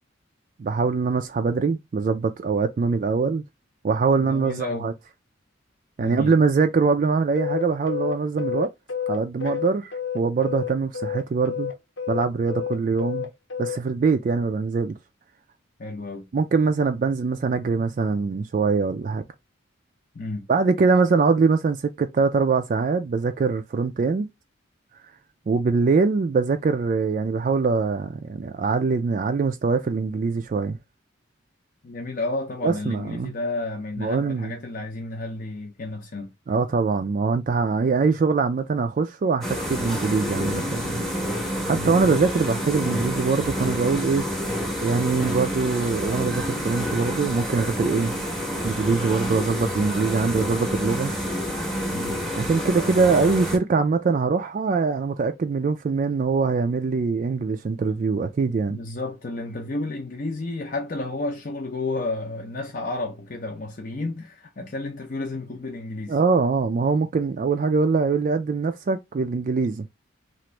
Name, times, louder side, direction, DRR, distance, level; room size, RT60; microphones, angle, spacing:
voice 1, 0.6-3.4 3.8-4.9 6.0-8.7 9.1-11.7 12.1-13.3 13.6-15.0 16.3-19.2 20.5-24.3 25.5-30.8 32.6-33.3 34.0-34.5 36.5-41.0 41.6-44.4 44.8-48.1 48.6-51.1 52.4-58.8 66.1-69.9, right 4 dB, 40° right, 0.3 m, -23 dB
voice 2, 4.1-4.9 6.0-6.3 15.8-16.3 20.1-20.5 31.8-36.3 41.7-42.0 51.9-52.2 58.7-66.2, left 2 dB, 45° left, 0.6 m, -31 dB
sound 1, 7.4-10.7 10.9-13.8, left 8 dB, 75° left, 0.8 m, -29 dB
sound 2, 39.4-53.6, equal, ahead, 0.8 m, -28 dB
2.9 x 2.5 x 3.2 m
head